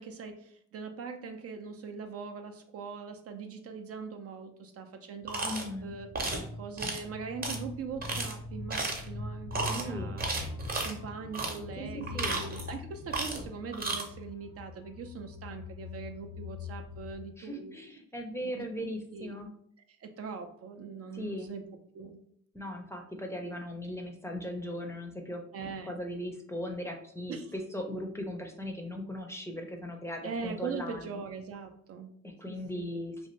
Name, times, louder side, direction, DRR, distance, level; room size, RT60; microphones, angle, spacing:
voice 1, 0.0-6.1 6.6-10.3 10.8-17.8 18.4-19.3 20.0-21.6 21.9-22.2 25.5-26.0 27.3-27.5 30.2-32.1 32.5-32.9, right 5 dB, 50° right, 5 dB, 0.4 m, -41 dB
sound 1, 5.2-17.2, left 3 dB, 85° left, 0.5 m, -43 dB
sound 2, 5.3-5.7 6.1-6.4 6.8-7.0 7.4-7.6 8.0-8.3 8.7-9.1 9.5-9.8 10.2-10.9 11.3-11.6 12.0-12.8 13.1-13.5 13.7-14.0, right 3 dB, 30° right, 0.7 m, -33 dB
voice 2, 5.4-5.9 9.6-10.2 11.8-12.4 17.4-19.5 21.1-21.5 22.5-31.2 32.2-33.3, equal, 10° left, 3 dB, 0.5 m, -38 dB
2.6 x 2.5 x 3.1 m, 0.66 s
cardioid pair, 90°, 30 cm